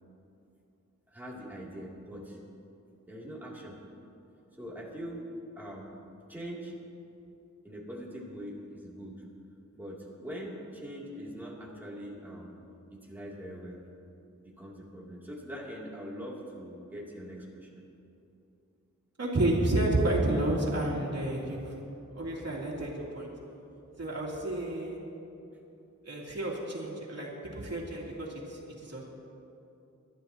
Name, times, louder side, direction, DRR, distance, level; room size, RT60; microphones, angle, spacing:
voice 1, 1.1-2.4 3.1-3.8 4.6-5.3 5.6-5.9 6.3-6.7 7.6-9.2 9.7-12.5 12.9-13.8 14.4-17.9, equal, 5° right, -6 dB, 2.9 m, -42 dB
voice 2, 19.2-21.7 22.1-23.3 24.0-25.0 26.0-29.0, right 1 dB, 55° right, -4 dB, 3.0 m, -30 dB
26.5 x 12.5 x 3.0 m, 2.8 s
wide cardioid pair, 120°, 30 cm